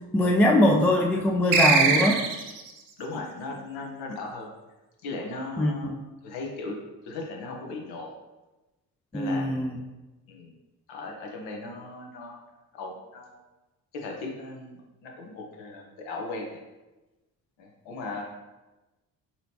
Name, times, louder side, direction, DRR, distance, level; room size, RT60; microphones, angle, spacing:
voice 1, 0.1-2.2 5.6-5.7 9.1-9.8, left 1 dB, 5° left, 0 dB, 0.3 m, -21 dB
sound 1, 1.5-2.7, right 5 dB, 45° right, 0.6 m, -22 dB
voice 2, 3.0-4.5 5.0-5.9 6.2-6.8 7.0-8.1 9.1-9.8 10.3-10.5 10.9-12.4 12.7-13.4 13.9-16.6 17.6-18.2, left 3 dB, 75° left, 0 dB, 0.9 m, -37 dB
4.1 x 2.8 x 2.9 m, 1.1 s
hypercardioid pair, 50°, 47 cm